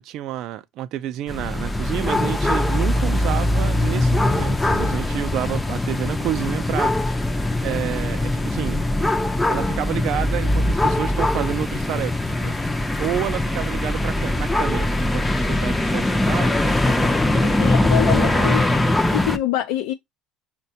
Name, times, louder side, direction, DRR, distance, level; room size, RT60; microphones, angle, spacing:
voice 1, 0.0-6.9 7.5-8.8 9.5-12.6 13.0-18.9, right 12 dB, 55° right, 0.3 m, -30 dB
sound 1, 1.3-19.4, left 1 dB, 5° left, 0.4 m, -21 dB
voice 2, 17.6-18.7 19.1-19.9, left 14 dB, 90° left, 0.5 m, -24 dB
6.0 x 2.2 x 2.7 m
cardioid pair, 145°, 0 cm